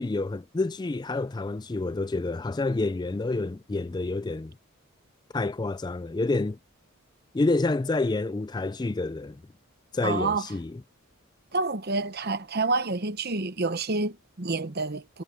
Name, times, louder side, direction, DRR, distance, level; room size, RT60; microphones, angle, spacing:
voice 1, 0.0-4.5 5.3-6.6 7.3-9.4 9.9-10.8, left 2 dB, 20° left, 0.3 m, -28 dB
voice 2, 10.0-10.5 11.5-15.2, right 3 dB, 45° right, 1.0 m, -28 dB
head